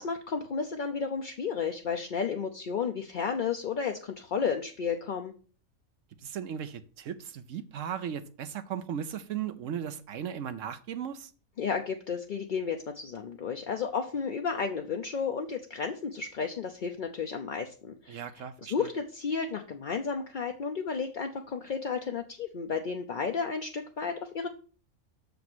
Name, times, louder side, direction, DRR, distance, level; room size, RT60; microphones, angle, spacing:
voice 1, 0.0-5.3 11.6-18.2 18.6-24.5, left 6 dB, 50° left, 0.6 m, -32 dB
voice 2, 6.2-11.3 18.1-18.9, right 8 dB, 65° right, 1.0 m, -37 dB
6.9 x 5.1 x 6.0 m
omnidirectional pair, 1.5 m